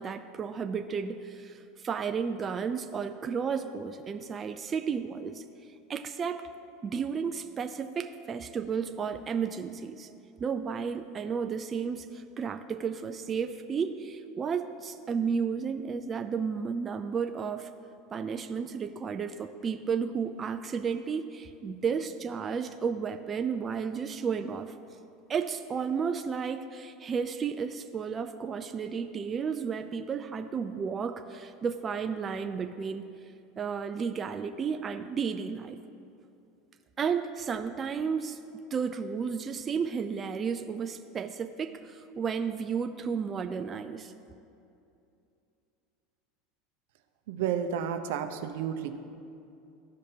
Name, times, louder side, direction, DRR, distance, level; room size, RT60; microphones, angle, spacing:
voice 1, 0.0-5.4 5.9-6.5 6.8-10.1 10.4-17.7 18.1-24.7 25.3-33.1 33.6-35.8 37.0-44.1, right 6 dB, 25° right, 7 dB, 0.3 m, -33 dB
voice 2, 47.3-49.0, right 8 dB, 75° right, 7 dB, 0.6 m, -31 dB
14.0 x 5.1 x 2.8 m, 2.6 s
supercardioid pair, 120°, 0 cm